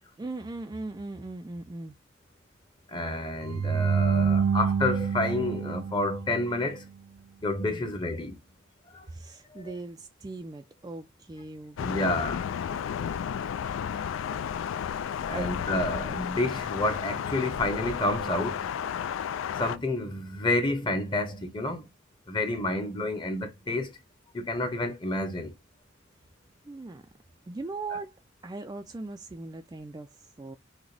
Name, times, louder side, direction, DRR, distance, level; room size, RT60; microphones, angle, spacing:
voice 1, 0.2-1.9 7.7-7.9 9.1-12.2 15.3-15.4 26.6-27.0 27.5-28.2 28.4-30.6, right 2 dB, 20° right, 0.3 m, -39 dB
voice 2, 2.9-6.8 7.4-8.4 8.9-9.0 9.5-9.6 11.8-12.5 15.3-18.6 19.6-21.9 22.3-24.0 24.3-25.5, left 2 dB, 25° left, 0.9 m, -29 dB
sound 1, 3.4-6.6, right 6 dB, 85° right, 0.5 m, -27 dB
Thunder, 11.8-19.8, left 8 dB, 70° left, 0.3 m, -32 dB
6.1 x 2.2 x 3.2 m
head